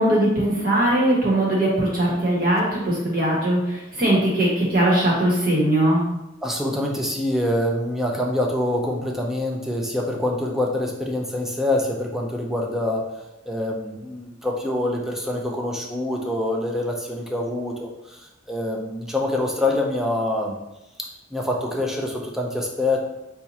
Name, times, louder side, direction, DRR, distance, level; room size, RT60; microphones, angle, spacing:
voice 1, 0.0-6.0, right 1 dB, 50° right, -5 dB, 1.3 m, -20 dB
voice 2, 6.4-13.1 13.5-20.6 21.0-23.1, left 1 dB, ahead, 0 dB, 0.4 m, -25 dB
4.2 x 2.4 x 2.7 m, 0.96 s
head